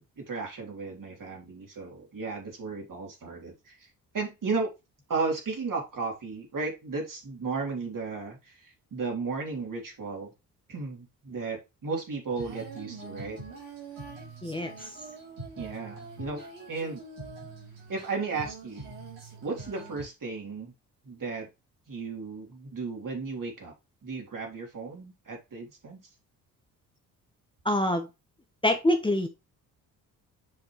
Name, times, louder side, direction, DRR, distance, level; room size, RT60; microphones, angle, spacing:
voice 1, 0.0-3.9 4.1-4.7 5.1-10.3 10.7-13.4 15.6-17.0 17.9-18.9 19.4-20.7 21.0-21.5 21.9-23.7 24.0-26.1, right 4 dB, 40° right, 1 dB, 3.5 m, -34 dB
Female singing, 12.3-20.1, right 3 dB, 75° right, 3.4 m, -44 dB
voice 2, 14.4-15.0 27.6-28.1 28.6-29.3, left 1 dB, 10° left, 4 dB, 1.3 m, -25 dB
7.4 x 5.3 x 3.2 m, 0.25 s
hypercardioid pair, 45°, 47 cm